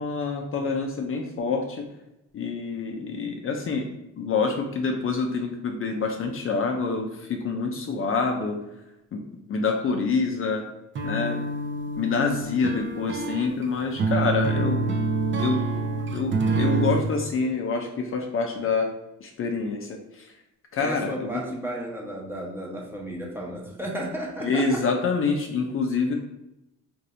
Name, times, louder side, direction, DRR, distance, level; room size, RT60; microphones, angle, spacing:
voice 1, 0.0-1.9 2.3-3.9 4.2-8.6 9.1-9.2 9.5-10.6 11.0-11.4 12.0-14.9 15.4-15.7 16.1-18.9 19.2-20.3 20.7-21.4 24.4-26.1, left 4 dB, 45° left, 3 dB, 0.5 m, -26 dB
sound 1, 11.0-17.1, right 3 dB, 40° right, 0.5 m, -26 dB
voice 2, 20.8-24.8, right 1 dB, 5° right, -2 dB, 0.9 m, -33 dB
2.6 x 2.6 x 4.2 m, 0.91 s
cardioid pair, 90°, 30 cm